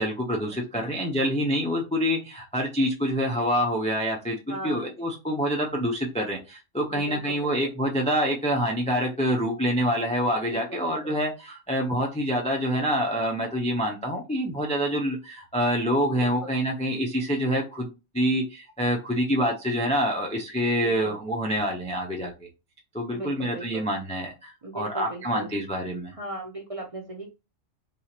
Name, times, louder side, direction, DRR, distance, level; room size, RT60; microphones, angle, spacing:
voice 1, 0.0-22.3 22.9-26.1, equal, 10° left, 0.4 m, -26 dB
voice 2, 4.5-4.9 6.9-7.7 10.5-11.1 16.2-16.5 20.8-21.2 23.1-23.9 24.6-25.5 26.1-27.3, right 2 dB, 35° right, 0.6 m, -38 dB
3.7 x 2.8 x 2.9 m
omnidirectional pair, 1.3 m